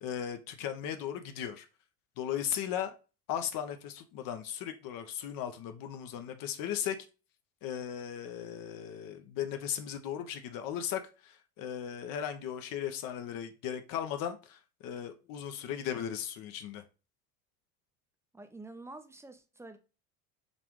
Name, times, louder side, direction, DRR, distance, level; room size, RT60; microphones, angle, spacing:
voice 1, 0.0-1.7 2.2-2.9 3.3-7.0 7.6-16.8, left 9 dB, 50° left, 0.8 m, -37 dB
voice 2, 18.3-19.8, right 2 dB, 5° right, 0.5 m, -48 dB
4.0 x 3.4 x 3.1 m
figure-of-eight pair, 65°, 44 cm